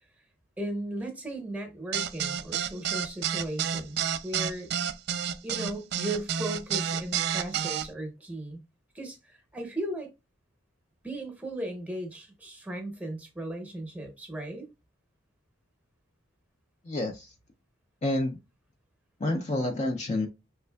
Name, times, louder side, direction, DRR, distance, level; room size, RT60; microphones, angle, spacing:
voice 1, 0.6-4.7 5.4-8.6 8.9-10.1 11.0-14.7, right 1 dB, 5° right, 0.8 m, -36 dB
sound 1, 1.9-7.9, right 8 dB, 55° right, 0.3 m, -29 dB
voice 2, 16.8-17.3 18.0-18.4 19.2-20.3, left 2 dB, 35° left, 0.4 m, -29 dB
5.1 x 3.3 x 2.2 m
head